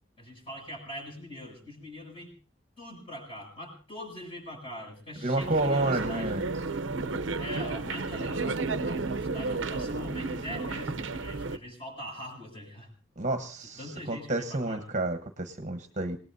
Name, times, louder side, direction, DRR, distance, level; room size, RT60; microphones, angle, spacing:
voice 1, 0.2-2.3 2.8-6.3 7.4-12.9 13.6-14.8, equal, 30° left, 1 dB, 7.2 m, -42 dB
voice 2, 5.2-6.5 13.2-16.2, right 2 dB, 40° right, 7 dB, 1.1 m, -30 dB
sound 1, 5.4-11.6, right 3 dB, 70° right, 0.7 m, -32 dB
28.0 x 18.5 x 2.7 m, 0.35 s
head